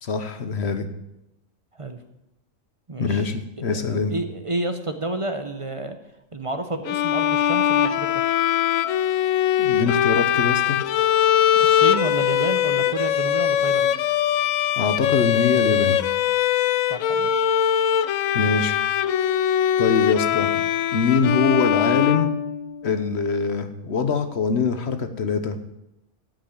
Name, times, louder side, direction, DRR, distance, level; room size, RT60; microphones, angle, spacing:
voice 1, 0.0-0.9 3.0-4.1 9.6-10.8 14.8-16.0 18.3-18.8 19.8-20.5 20.9-22.3 22.8-25.6, left 5 dB, 55° left, 9 dB, 1.3 m, -23 dB
voice 2, 2.9-3.3 3.7-6.0 6.3-8.2 11.6-14.0 16.9-17.5, right 2 dB, 30° right, 7 dB, 0.9 m, -30 dB
Bowed string instrument, 6.9-22.9, left 10 dB, 80° left, 1.0 m, -21 dB
13.0 x 6.1 x 8.8 m, 0.90 s
omnidirectional pair, 1.4 m